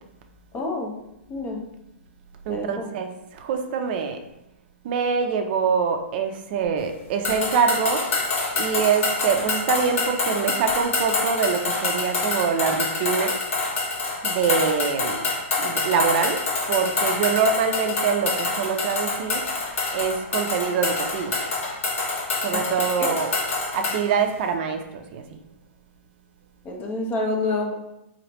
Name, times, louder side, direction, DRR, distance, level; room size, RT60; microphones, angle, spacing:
voice 1, 0.5-0.9 1.3-1.6 2.5-2.7 22.5-22.6 23.0-23.2 26.6-27.7, left 2 dB, 25° left, 2 dB, 0.6 m, -27 dB
voice 2, 2.5-4.2 4.8-8.1 8.5-13.4 14.2-15.2 15.6-19.4 19.9-21.4 22.4-23.3 23.7-25.2, right 6 dB, 50° right, 5 dB, 0.5 m, -24 dB
sound 1, 7.2-24.0, left 3 dB, 75° left, 1.1 m, -26 dB
4.0 x 3.1 x 2.9 m, 0.88 s
hypercardioid pair, 135°, 7 cm